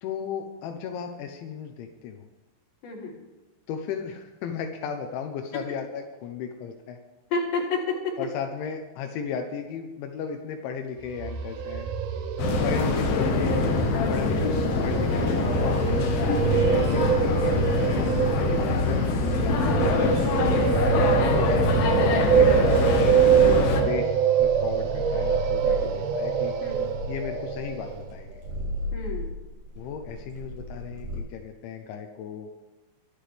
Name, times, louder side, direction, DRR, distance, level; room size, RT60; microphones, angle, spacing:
voice 1, 0.0-2.3 3.7-7.0 8.2-11.9 12.6-13.6 14.1-16.0 16.7-19.1 19.4-20.4 21.5-26.5 27.1-28.4 29.8-32.5, left 7 dB, 85° left, 4 dB, 3.3 m, -36 dB
voice 2, 2.8-3.1 7.3-7.8 16.3-16.6 19.1-19.2 20.3-20.7 25.6-25.9 26.6-26.8 28.9-29.3, left 3 dB, 50° left, -4 dB, 4.8 m, -31 dB
sound 1, 11.1-28.0, right 8 dB, 75° right, 1.9 m, -25 dB
sound 2, 12.4-23.8, left 3 dB, 65° left, 2.9 m, -24 dB
sound 3, 24.4-31.2, left 1 dB, 40° right, 7.0 m, -36 dB
23.5 x 9.7 x 3.4 m, 1.2 s
omnidirectional pair, 5.2 m